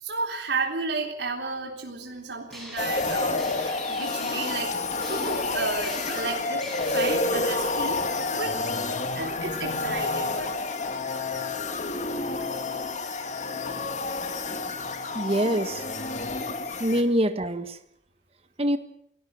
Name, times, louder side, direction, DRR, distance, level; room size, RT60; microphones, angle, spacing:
voice 1, 0.0-6.6 6.9-8.0 8.3-8.6 9.1-10.6 14.1-14.2, right 3 dB, 75° right, 2 dB, 3.7 m, -32 dB
sound 1, 2.5-7.2, equal, ahead, 7.4 m, -43 dB
sound 2, 2.8-17.0, left 3 dB, 40° left, 2.5 m, -29 dB
voice 2, 15.1-15.8 16.8-17.8 18.6-18.8, equal, 35° right, 9 dB, 1.4 m, -24 dB
28.5 x 18.5 x 6.2 m, 0.71 s
head